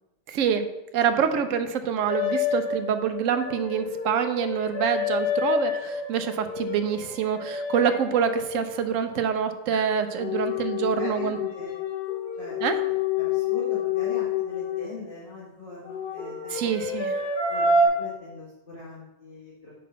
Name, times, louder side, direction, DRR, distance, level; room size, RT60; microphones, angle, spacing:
voice 1, 0.3-0.7 0.9-11.4 12.6-12.8 16.5-17.2, right 7 dB, 65° right, 8 dB, 0.8 m, -26 dB
sound 1, 2.1-9.3 9.7-14.9 15.8-17.9, left 4 dB, 70° left, 1.5 m, -28 dB
voice 2, 11.0-11.7 12.4-12.6 13.2-16.9 17.5-17.7 18.0-19.7, left 2 dB, 35° left, -9 dB, 1.7 m, -41 dB
6.0 x 5.1 x 5.6 m, 0.96 s
omnidirectional pair, 1.8 m